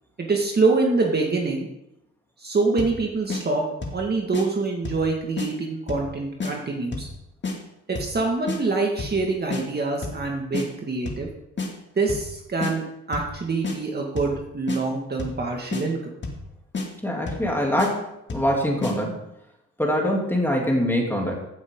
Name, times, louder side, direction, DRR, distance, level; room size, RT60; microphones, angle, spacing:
voice 1, 0.2-1.7 2.4-3.6 3.9-7.1 7.9-11.3 12.0-16.1, right 3 dB, 35° right, 0 dB, 2.1 m, -25 dB
sound 1, 2.8-3.0 3.3-3.4 3.8-4.0 4.3-4.5 4.8-5.1 5.4-5.5 5.9-6.1 6.4-6.5 6.9-7.1 7.4-7.6 8.0-8.2 8.5-8.6 9.0-9.2 9.5-9.6 10.0-10.2 10.5-10.7 11.1-11.3 11.6-11.7 12.1-12.3 12.6-12.7 13.1-13.3 13.6-13.8 14.2-14.4 14.7-14.8 15.2-15.4 15.7-15.8 16.2-16.5 16.7-16.9 17.3-17.5 17.8-17.9 18.3-18.5 18.8-18.9, left 3 dB, 40° left, 2.4 m, -29 dB
voice 2, 17.0-18.0 18.3-19.2 19.8-21.3, equal, 5° left, -1 dB, 3.2 m, -23 dB
15.5 x 7.6 x 3.9 m, 0.85 s
cardioid pair, 90°, 30 cm